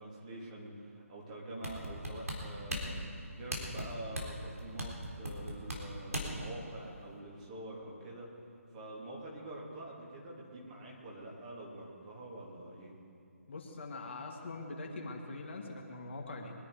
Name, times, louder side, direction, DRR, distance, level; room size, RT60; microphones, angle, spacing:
voice 1, 0.0-3.0 3.3-8.3 8.7-12.9, right 1 dB, 30° right, -3 dB, 3.0 m, -46 dB
sound 1, 1.6-6.5 6.9-7.0, equal, 80° right, 3.7 m, -38 dB
voice 2, 13.5-16.5, left 2 dB, 50° left, 0 dB, 2.2 m, -43 dB
23.5 x 10.5 x 5.0 m, 2.7 s
figure-of-eight pair, 150°, 8 cm